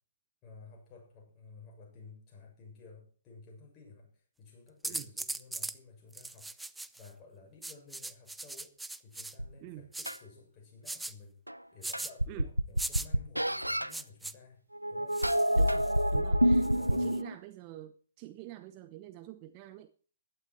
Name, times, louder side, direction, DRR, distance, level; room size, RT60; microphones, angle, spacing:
voice 1, 0.4-4.1 4.4-6.5 7.0-8.7 9.0-11.4 11.7-14.6 14.9-15.2 16.6-17.1, left 4 dB, 25° left, 0 dB, 7.2 m, -54 dB
sound 1, 4.8-5.8 6.1-7.1 7.6-9.3 9.9-10.2 10.9-11.1 11.8-12.1 12.8-13.1 13.9-14.3 15.1-16.0 16.6-17.2, right 2 dB, 5° right, 0.6 m, -39 dB
sound 2, 9.4-9.5 10.1-10.2 11.5-11.6 11.9-13.9 14.7-17.4, equal, 90° right, 0.8 m, -27 dB
voice 2, 15.5-16.6 16.9-19.9, right 14 dB, 30° right, 11 dB, 0.9 m, -47 dB
16.0 x 12.0 x 4.6 m, 0.41 s
figure-of-eight pair, 125°, 0 cm